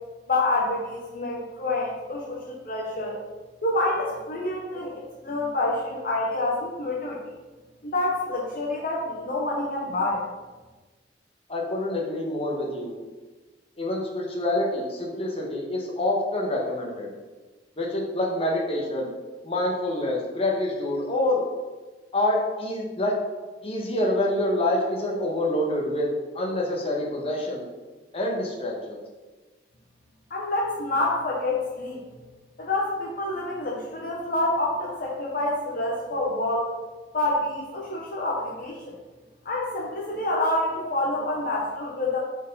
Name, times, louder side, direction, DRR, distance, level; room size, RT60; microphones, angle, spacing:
voice 1, 0.3-3.2 3.6-7.2 7.8-10.2 30.3-32.0 32.6-36.8 37.1-38.9 39.4-42.2, left 2 dB, 50° left, -3 dB, 0.9 m, -27 dB
voice 2, 11.5-12.9 13.8-17.1 17.8-19.1 19.4-21.4 22.1-23.2 23.6-26.1 26.3-27.6 28.1-29.0, left 1 dB, 30° left, -1 dB, 1.2 m, -26 dB
4.6 x 4.5 x 5.4 m, 1.2 s
head